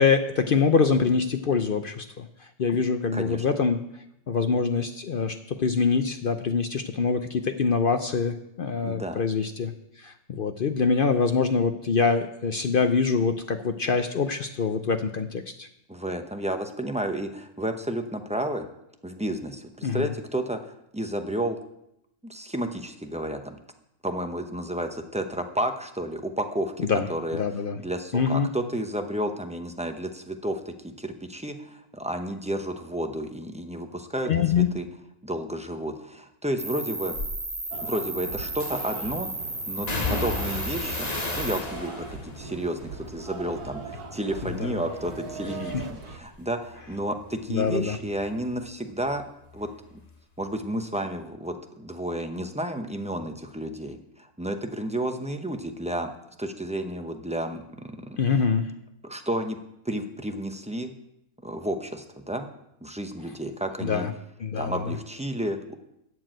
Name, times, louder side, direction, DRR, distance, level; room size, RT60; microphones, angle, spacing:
voice 1, 0.0-2.3 2.6-3.8 4.3-9.7 10.0-15.7 19.8-20.1 26.8-27.1 27.3-27.8 28.1-28.5 34.3-34.7 44.6-44.7 47.5-48.0 58.2-58.7 63.8-64.1 64.4-64.9, left 5 dB, 60° left, 8 dB, 0.5 m, -24 dB
voice 2, 3.1-3.4 8.8-9.2 15.9-18.7 19.0-21.6 22.2-23.6 24.0-27.4 27.8-34.9 35.2-37.2 37.8-39.3 39.7-41.1 41.4-49.2 49.5-49.7 50.4-56.1 56.4-58.2 59.0-59.6 59.8-60.9 61.4-62.5 62.8-64.1 64.6-65.7, right 1 dB, 10° right, 6 dB, 0.4 m, -31 dB
Cricket, 36.6-41.6, right 2 dB, 25° right, 2.6 m, -34 dB
sound 1, 37.1-37.4 38.6-39.1 39.9-44.1 44.4-45.1 45.4-48.7 49.0-50.1 50.4-50.5, left 3 dB, 30° left, 1.0 m, -35 dB
sound 2, 37.7-46.2, right 4 dB, 80° right, 1.8 m, -40 dB
13.5 x 4.7 x 9.0 m, 0.81 s
omnidirectional pair, 1.6 m